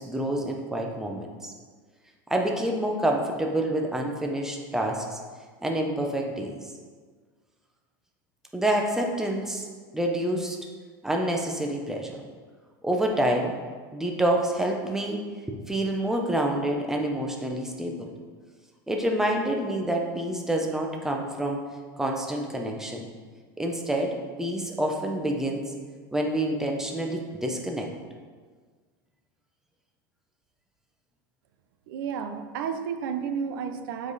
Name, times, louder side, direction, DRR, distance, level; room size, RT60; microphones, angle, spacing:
voice 1, 0.0-1.5 2.3-5.2 5.6-6.6 8.5-10.6 11.0-12.2 12.8-13.5 13.9-15.2 15.5-18.1 18.9-21.7 22.0-23.0 23.6-25.6 26.1-27.9, right 1 dB, 5° right, 1 dB, 0.8 m, -27 dB
voice 2, 31.9-34.1, right 7 dB, 75° right, 8 dB, 0.7 m, -32 dB
7.7 x 5.1 x 4.1 m, 1.6 s
supercardioid pair, 145°, 11 cm